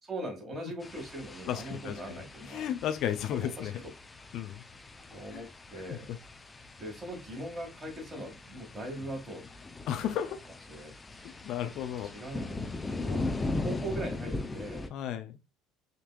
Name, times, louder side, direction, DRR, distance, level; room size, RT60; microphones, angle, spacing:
voice 1, 0.0-2.7 3.3-3.9 5.1-6.1 6.8-9.4 10.7-10.9 12.1-12.6 12.9-13.2 13.6-14.9, right 1 dB, 30° right, 2.1 m, -40 dB
sound 1, 0.8-14.9, left 2 dB, 20° left, 0.6 m, -39 dB
voice 2, 1.5-1.9 2.5-3.7 4.3-4.6 5.3-5.4 9.9-10.4 11.4-12.1 14.9-15.3, left 10 dB, 60° left, 0.6 m, -33 dB
5.2 x 2.9 x 2.4 m
supercardioid pair, 80°, 0 cm